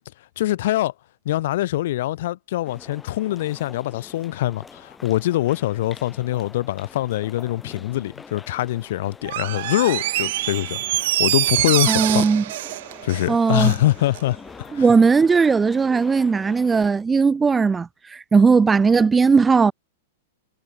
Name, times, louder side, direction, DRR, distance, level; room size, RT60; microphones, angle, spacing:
voice 1, 0.4-0.9 1.3-12.3 13.0-14.9, left 15 dB, 65° left, 2.4 m, -24 dB
sound 1, 2.6-16.9, left 5 dB, 15° left, 7.2 m, -45 dB
Door, 9.2-13.8 14.1-14.2, right 16 dB, 60° right, 0.6 m, -25 dB
voice 2, 11.9-12.4 13.3-13.7 14.7-19.7, right 5 dB, 15° right, 1.2 m, -17 dB
hypercardioid pair, 135°, 0 cm